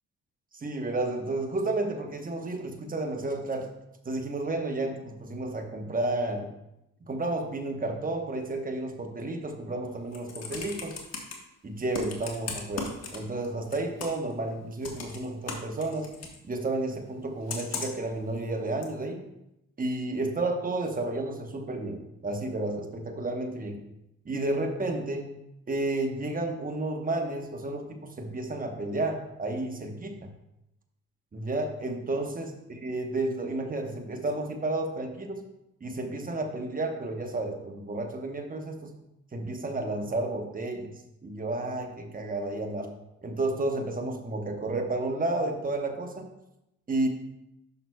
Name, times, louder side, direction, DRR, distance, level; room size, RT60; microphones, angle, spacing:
voice 1, 0.5-3.7 4.0-6.5 7.0-11.0 11.6-16.1 16.4-19.2 19.8-23.8 24.2-25.3 25.7-30.3 31.3-35.4 35.8-38.9 39.3-40.9 41.2-42.9 43.2-46.3 46.9-47.1, right 2 dB, 30° right, 4 dB, 1.2 m, -31 dB
Computer keyboard, 9.9-11.3 11.9-13.5 13.7-14.3 14.8-16.4 17.5-18.1 18.8-18.9, left 4 dB, 55° left, 1.4 m, -37 dB
10.5 x 6.0 x 2.3 m, 0.87 s
cardioid pair, 90°, 30 cm